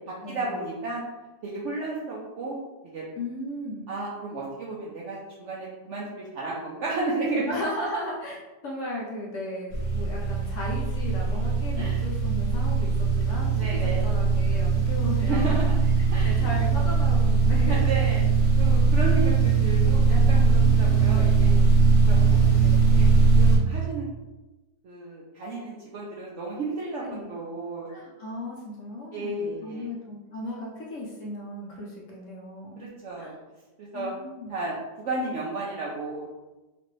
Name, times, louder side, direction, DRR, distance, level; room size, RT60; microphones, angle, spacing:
voice 1, 0.3-1.0 1.4-2.6 2.8-3.0 3.9-7.6 11.8-12.0 13.5-14.1 15.2-15.8 16.1-16.5 17.7-18.2 18.6-21.6 22.1-22.4 22.9-23.1 23.4-24.1 24.8-27.9 29.1-29.9 32.8-33.4 33.8-34.1 34.5-36.4, right 2 dB, 75° right, -5 dB, 0.7 m, -33 dB
voice 2, 3.2-3.9 7.5-8.4 8.6-15.6 16.0-17.8 20.5-21.2 22.0-22.9 27.0-27.3 27.9-32.9 33.2-33.3 33.9-34.5, left 1 dB, 65° left, -3 dB, 0.8 m, -36 dB
sound 1, 9.7-23.6, right 4 dB, 45° left, 0.4 m, -21 dB
3.0 x 2.5 x 3.1 m, 1.1 s
omnidirectional pair, 1.7 m